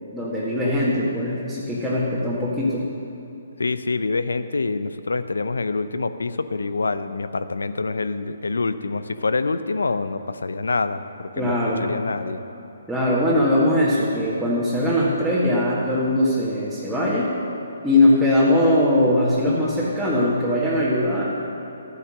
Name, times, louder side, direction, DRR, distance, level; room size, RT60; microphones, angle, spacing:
voice 1, 0.1-2.8 11.4-11.9 12.9-17.3 17.8-21.2, left 1 dB, ahead, -11 dB, 2.0 m, -20 dB
voice 2, 3.6-12.4, left 3 dB, 80° left, 12 dB, 0.6 m, -26 dB
12.5 x 9.7 x 6.4 m, 2.9 s
figure-of-eight pair, 140°, 0 cm